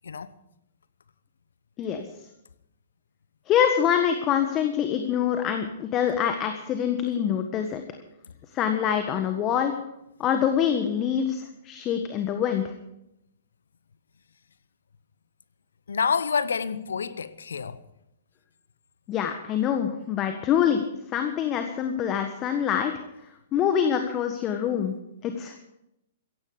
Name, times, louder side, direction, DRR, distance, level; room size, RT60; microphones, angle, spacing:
voice 1, 3.5-7.8 8.5-9.7 10.2-12.7 19.1-20.8 21.1-22.9 23.5-24.9 25.2-25.6, left 8 dB, 30° left, 1.5 m, -25 dB
voice 2, 15.9-17.8, left 6 dB, 75° left, 0.9 m, -28 dB
16.0 x 15.5 x 5.1 m
figure-of-eight pair, 115°, 0 cm